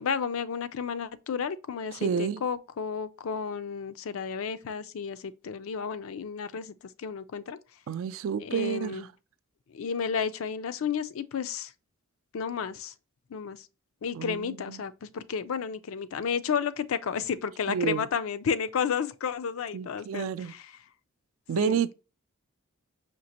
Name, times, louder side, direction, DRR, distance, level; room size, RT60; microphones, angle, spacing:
voice 1, 0.0-7.6 8.4-9.1 9.7-11.7 12.3-12.9 13.3-13.6 14.0-20.6 21.6-21.8, left 6 dB, 70° left, 0.4 m, -32 dB
voice 2, 1.9-2.4 7.9-9.1 14.1-14.9 17.7-18.1 19.7-20.5 21.5-21.9, right 7 dB, 65° right, 0.3 m, -30 dB
5.2 x 2.9 x 2.8 m
head